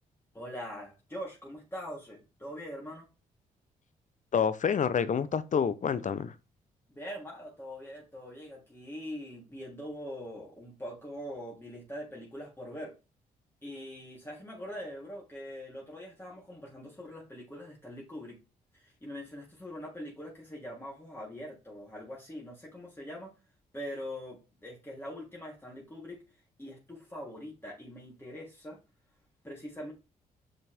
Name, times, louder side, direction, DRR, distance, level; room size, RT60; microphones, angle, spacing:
voice 1, 0.3-3.1 6.9-12.9 13.6-18.4 18.7-23.3 23.7-26.2 26.6-28.8 29.4-29.9, equal, 15° left, 3.4 m, -43 dB
voice 2, 4.3-6.3, left 7 dB, 50° left, 0.8 m, -28 dB
6.7 x 5.8 x 3.5 m
supercardioid pair, 65°, 16 cm